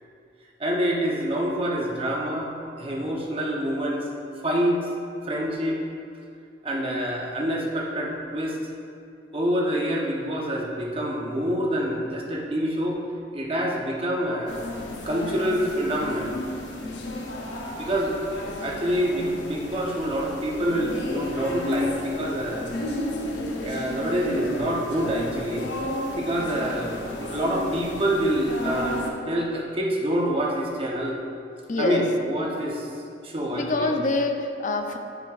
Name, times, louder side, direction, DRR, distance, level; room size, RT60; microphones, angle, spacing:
voice 1, 0.6-4.0 4.4-4.9 5.2-5.8 6.6-8.6 9.3-13.0 13.3-14.6 15.0-16.3 17.8-22.7 23.6-25.7 26.1-31.2 31.8-33.0 33.2-33.9, equal, 30° right, -2 dB, 0.8 m, -26 dB
sound 1, 14.5-29.1, left 1 dB, 80° left, 0.8 m, -33 dB
voice 2, 31.7-32.1 33.5-35.0, left 2 dB, 45° left, 5 dB, 0.5 m, -25 dB
7.6 x 6.4 x 2.4 m, 2.5 s
head